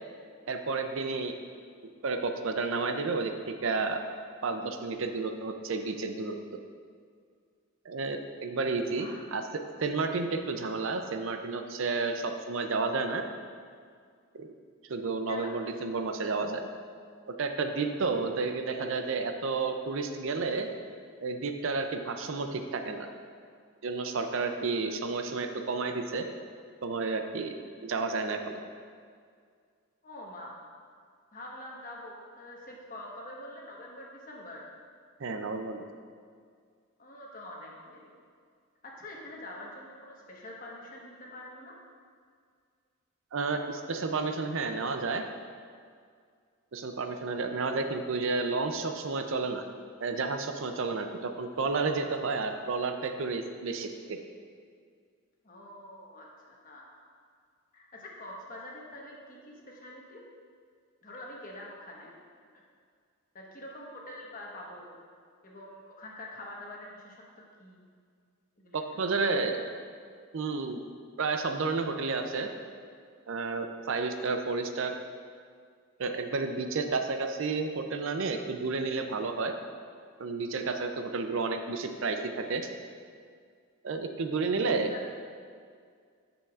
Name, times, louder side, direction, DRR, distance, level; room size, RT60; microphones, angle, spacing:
voice 1, 0.5-1.4 2.0-4.0 4.4-6.6 7.9-9.5 9.8-13.2 14.3-14.5 14.9-16.6 17.3-20.7 21.2-23.1 23.8-26.3 26.8-27.5 27.8-28.6 35.2-35.8 43.3-45.2 46.7-49.7 50.0-54.2 68.7-69.6 70.3-70.8 71.2-72.5 73.3-75.0 76.0-79.5 80.2-82.7 83.8-84.9, right 4 dB, 60° right, 6 dB, 0.5 m, -31 dB
voice 2, 30.0-30.6 31.3-34.6 37.0-38.1 38.8-41.8 55.4-57.1 57.7-60.2 61.0-62.1 62.5-62.6 63.3-65.0 65.4-67.2 67.6-67.8 68.6-69.2 84.9-85.1, left 1 dB, 40° left, -3 dB, 1.2 m, -45 dB
10.5 x 6.9 x 2.4 m, 2.1 s
head